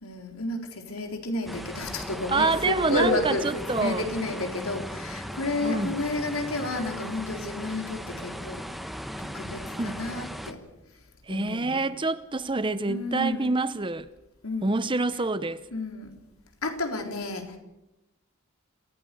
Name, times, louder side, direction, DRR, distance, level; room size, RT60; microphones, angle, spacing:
voice 1, 0.0-8.6 9.2-10.6 11.3-11.8 12.9-13.5 14.4-14.8 15.7-16.1 16.6-17.5, left 2 dB, 85° left, 3.9 m, -31 dB
sound 1, 1.5-10.5, equal, ahead, 1.1 m, -37 dB
voice 2, 2.3-4.1 5.6-6.0 9.8-10.0 11.3-14.1 14.6-15.6, right 3 dB, 25° right, 0.7 m, -27 dB
27.0 x 16.0 x 6.9 m
head